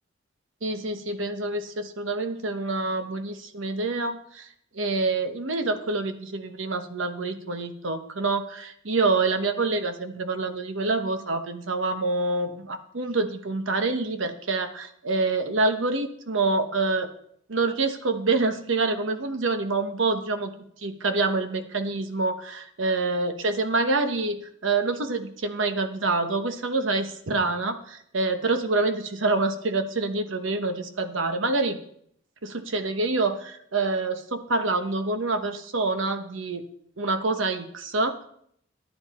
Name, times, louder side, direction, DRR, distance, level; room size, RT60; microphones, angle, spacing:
voice 1, 0.6-4.5 4.7-17.1 17.5-20.5 20.8-31.8 32.4-36.6 37.0-38.2, right 3 dB, 80° right, 8 dB, 1.1 m, -26 dB
10.5 x 10.5 x 4.2 m, 0.68 s
head